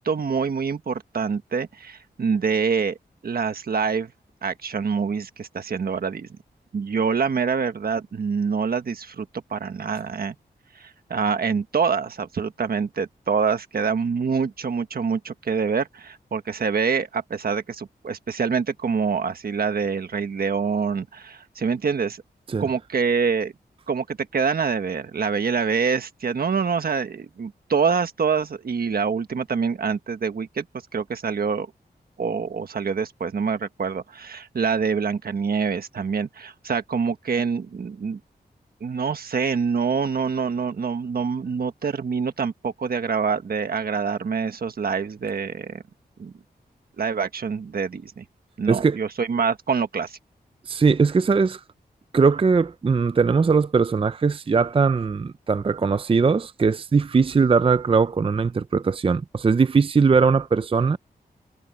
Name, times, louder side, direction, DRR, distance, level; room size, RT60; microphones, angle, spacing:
voice 1, 0.0-3.0 3.2-4.1 4.4-6.3 6.7-10.3 10.7-22.2 22.6-23.5 23.9-30.6 30.9-31.7 32.2-38.2 38.8-45.8 46.2-46.3 47.0-48.2 48.6-50.2, right 5 dB, 65° right, 1.4 m, -25 dB
voice 2, 48.7-49.0 50.7-51.6 52.1-61.0, right 5 dB, 35° right, 0.5 m, -20 dB
wide cardioid pair, 90°, 17 cm